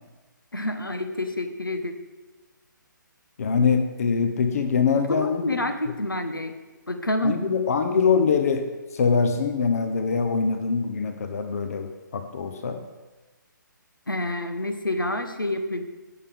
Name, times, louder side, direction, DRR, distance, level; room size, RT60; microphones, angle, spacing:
voice 1, 0.5-1.9 5.1-6.5 6.9-7.4 14.1-15.8, left 1 dB, 85° left, 8 dB, 1.1 m, -28 dB
voice 2, 3.4-5.6 7.2-8.7 8.9-12.8, left 5 dB, 45° left, 8 dB, 0.8 m, -23 dB
16.5 x 7.0 x 3.6 m, 1.2 s
figure-of-eight pair, 140°, 11 cm